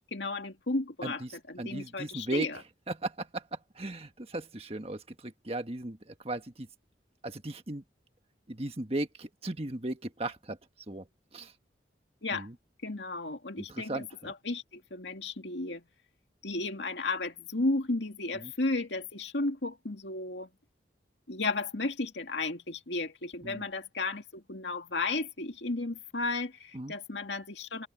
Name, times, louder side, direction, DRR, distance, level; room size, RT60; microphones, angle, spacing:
voice 1, 0.0-2.6 12.2-12.5 12.8-15.8 16.4-20.5 21.3-27.9, left 2 dB, 75° left, 2.2 m, -34 dB
voice 2, 1.6-2.5 2.9-6.7 7.2-7.8 8.5-10.6 10.9-11.0 11.3-11.5 12.3-12.5 13.6-14.3 18.4-18.5 23.4-23.6 26.7-26.9, right 2 dB, 35° right, 1.6 m, -36 dB
head